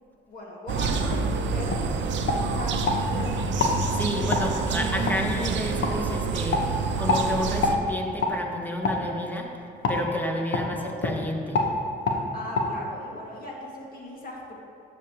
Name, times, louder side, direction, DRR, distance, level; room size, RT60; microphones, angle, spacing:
voice 1, 0.3-3.5 12.3-14.6, left 1 dB, 45° left, -2 dB, 1.9 m, -38 dB
sound 1, 0.7-7.8, right 4 dB, 70° right, 0.6 m, -28 dB
sound 2, 1.1-1.3 1.7-1.8 2.3-3.0 3.6-3.8 4.3-4.5 5.1-5.2 5.8-5.9 6.5-6.7 7.1-7.2 7.6-7.8 8.2-8.3 8.8-9.0 9.8-10.0 10.5-10.7 11.0-11.2 11.5-11.7 12.0-12.2 12.5-12.7, left 3 dB, 70° left, 1.1 m, -25 dB
voice 2, 3.9-6.6 7.0-9.5 9.9-11.6, left 1 dB, 10° left, 1 dB, 1.2 m, -31 dB
11.5 x 6.7 x 2.9 m, 2.5 s
cardioid pair, 90°, 20 cm